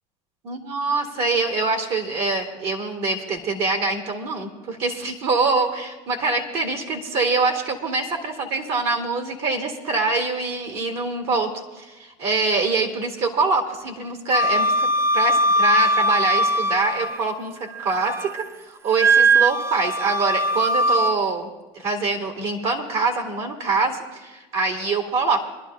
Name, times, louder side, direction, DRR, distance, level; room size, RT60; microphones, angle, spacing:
voice 1, 0.5-11.5 11.8-14.9 15.1-18.4 18.8-21.5 21.7-25.4, right 3 dB, 70° right, 2 dB, 2.3 m, -24 dB
Wind instrument woodwind instrument, 14.3-17.3 17.7-18.4 19.0-21.2, right 1 dB, 15° right, 0.3 m, -20 dB
27.0 x 11.5 x 2.3 m, 1.1 s
supercardioid pair, 95°, 17 cm